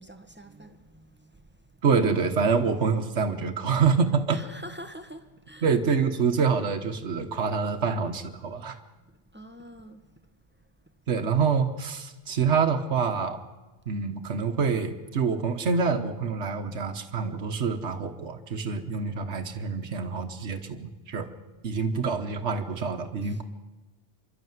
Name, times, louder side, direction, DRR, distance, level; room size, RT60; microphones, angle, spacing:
voice 1, 0.0-1.4 4.3-5.6 9.3-10.0 23.2-23.4, equal, 10° right, 1.5 m, -45 dB
voice 2, 1.8-4.4 5.6-8.8 11.1-13.4 13.9-21.3 21.6-23.4, right 5 dB, 75° right, 1.6 m, -26 dB
26.5 x 12.0 x 9.4 m
omnidirectional pair, 1.2 m